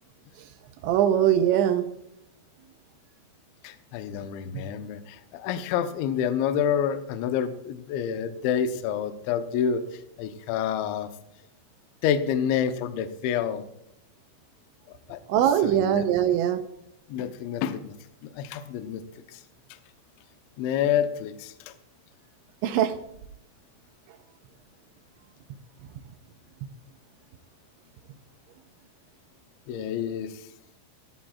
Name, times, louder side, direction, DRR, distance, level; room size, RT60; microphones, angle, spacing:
voice 1, 0.8-1.9 15.3-16.6 22.6-22.9, right 10 dB, 80° right, 8 dB, 2.9 m, -21 dB
voice 2, 3.6-11.1 12.0-13.6 14.9-15.2 15.6-16.1 17.1-17.9 18.3-19.0 19.3-19.4 20.6-21.5 29.7-30.3, left 8 dB, 75° left, 8 dB, 3.0 m, -28 dB
16.5 x 16.0 x 2.4 m, 0.79 s
omnidirectional pair, 5.7 m